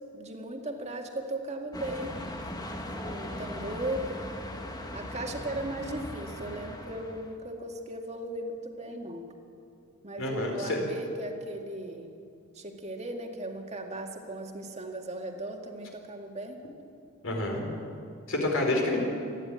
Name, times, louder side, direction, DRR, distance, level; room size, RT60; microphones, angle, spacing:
voice 1, 0.1-2.2 3.0-4.2 4.9-9.3 10.0-12.1 12.6-16.6, right 1 dB, 30° right, 2 dB, 2.0 m, -37 dB
sound 1, 1.7-7.4, left 1 dB, 20° left, 1.5 m, -39 dB
voice 2, 10.2-10.8 17.2-17.6 18.3-19.0, left 2 dB, 65° left, 1 dB, 4.3 m, -28 dB
27.5 x 10.5 x 9.8 m, 2.6 s
head